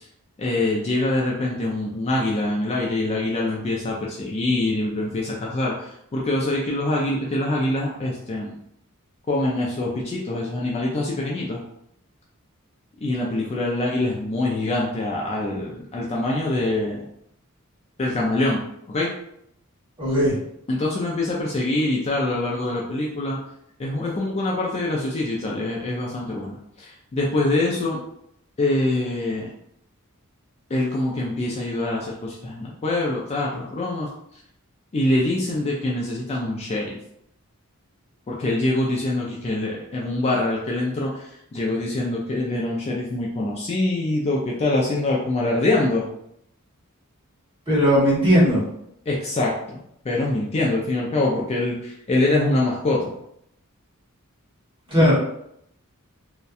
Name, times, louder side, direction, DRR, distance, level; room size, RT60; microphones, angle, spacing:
voice 1, 0.4-8.5 9.3-11.6 13.0-17.0 18.0-18.6 18.9-19.1 20.7-23.4 23.8-28.0 28.6-29.5 30.7-34.1 34.9-37.0 38.3-46.1 49.1-49.8 50.0-53.1 55.0-55.1, left 2 dB, 30° left, -3 dB, 0.3 m, -24 dB
voice 2, 20.0-20.4 47.7-48.6 54.9-55.1, equal, 20° right, -9 dB, 1.2 m, -17 dB
2.6 x 2.1 x 2.3 m, 0.74 s
head